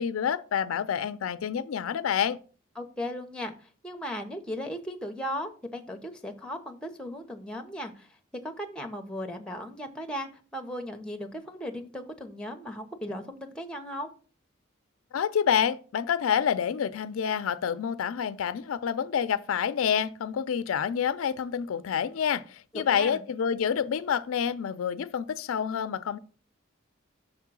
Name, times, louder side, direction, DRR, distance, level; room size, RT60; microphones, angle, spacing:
voice 1, 0.0-2.4 15.1-26.2, left 8 dB, 85° left, 0.4 m, -28 dB
voice 2, 2.8-8.1 8.4-14.1 22.7-23.2, equal, 5° left, 0.7 m, -37 dB
6.5 x 3.7 x 6.0 m
head